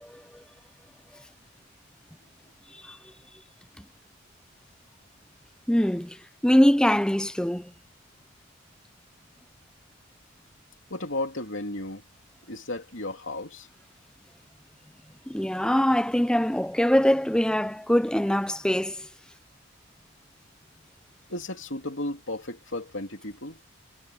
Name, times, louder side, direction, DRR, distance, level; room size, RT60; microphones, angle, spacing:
voice 1, 5.7-6.2 6.4-7.7 15.3-19.1, equal, 5° left, 0.5 m, -23 dB
voice 2, 10.9-12.0 12.5-13.7 21.3-23.6, left 2 dB, 60° left, 3.3 m, -34 dB
head